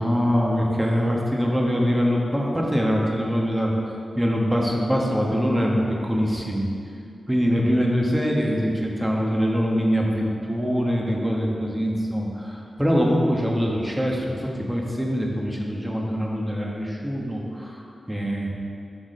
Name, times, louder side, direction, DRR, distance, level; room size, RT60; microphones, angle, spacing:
voice 1, 0.0-3.7 4.2-6.7 7.3-18.5, equal, 10° right, -1 dB, 1.4 m, -23 dB
6.3 x 6.1 x 5.0 m, 2.6 s
cardioid pair, 50°, 0 cm